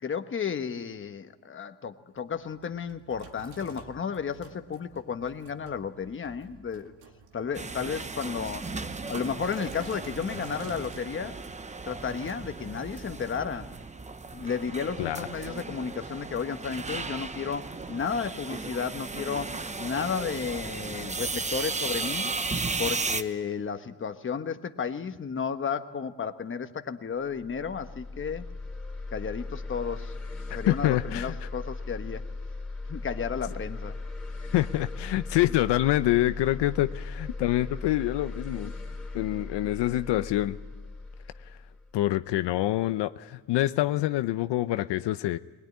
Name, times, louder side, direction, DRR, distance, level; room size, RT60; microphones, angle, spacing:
voice 1, 0.0-6.9 7.3-8.7 9.1-11.3 11.9-13.7 14.3-22.3 22.8-28.4 29.1-30.1 30.5-32.2 32.9-34.0, left 6 dB, 30° left, 1.2 m, -33 dB
Sink (filling or washing), 2.1-11.0, right 4 dB, 80° right, 2.1 m, -50 dB
sound 1, 7.5-23.2, right 3 dB, 15° right, 0.8 m, -35 dB
sound 2, 27.2-42.7, left 3 dB, 5° left, 3.5 m, -38 dB
voice 2, 30.5-31.3 34.5-38.7 39.1-40.6 41.9-45.4, left 15 dB, 75° left, 0.7 m, -26 dB
21.0 x 20.5 x 9.5 m
cardioid pair, 125°, 42 cm